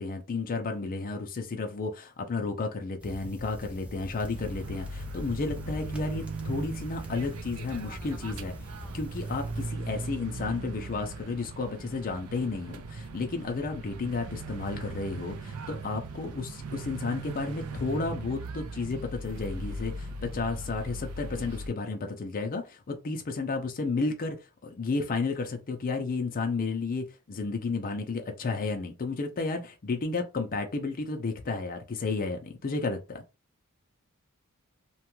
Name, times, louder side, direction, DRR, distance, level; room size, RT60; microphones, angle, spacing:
voice 1, 0.0-8.5 8.9-24.4 24.6-33.2, left 3 dB, 40° left, 0.5 m, -32 dB
sound 1, 3.0-9.7, equal, 5° right, 0.6 m, -43 dB
sound 2, 4.2-21.7, right 2 dB, 80° right, 0.5 m, -39 dB
2.9 x 2.2 x 3.0 m
head